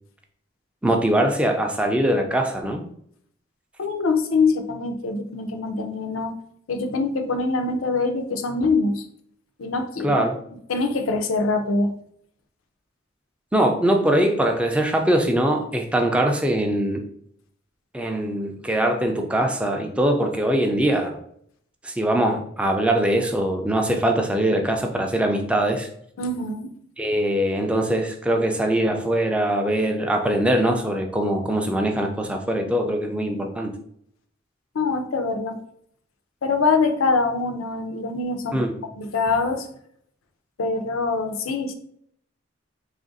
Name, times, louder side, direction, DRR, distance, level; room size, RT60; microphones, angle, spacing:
voice 1, 0.8-2.8 10.0-10.3 13.5-17.0 17.9-21.2 21.8-25.9 27.0-33.7 38.5-38.8, right 1 dB, 5° right, 3 dB, 0.3 m, -22 dB
voice 2, 3.8-6.3 6.7-9.0 9.6-10.3 10.7-11.9 26.2-26.7 33.2-33.3 34.7-35.6 36.4-38.7 38.9-39.7 40.6-41.7, left 3 dB, 85° left, 6 dB, 0.5 m, -24 dB
3.3 x 2.5 x 3.9 m, 0.67 s
head